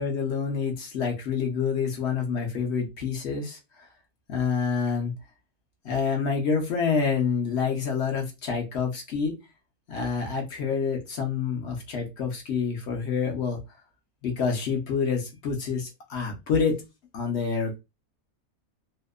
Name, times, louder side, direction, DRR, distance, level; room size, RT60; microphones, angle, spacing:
voice 1, 0.0-3.6 4.3-5.1 5.8-9.3 9.9-13.6 14.2-16.8 17.1-17.8, left 5 dB, 60° left, 0.8 m, -27 dB
2.7 x 2.0 x 2.3 m
omnidirectional pair, 1.5 m